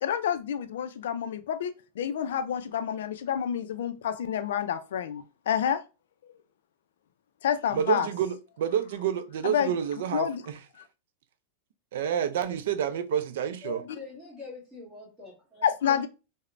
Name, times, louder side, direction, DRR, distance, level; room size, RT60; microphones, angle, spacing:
voice 1, 0.0-5.8 7.4-8.1 9.4-9.7 10.1-10.4 15.6-16.1, left 9 dB, 75° left, 0.3 m, -28 dB
voice 2, 7.7-10.6 11.9-13.8, right 9 dB, 65° right, 0.3 m, -29 dB
voice 3, 13.6-16.1, left 4 dB, 15° right, 1.3 m, -44 dB
3.1 x 2.0 x 2.4 m
supercardioid pair, 175°, 0 cm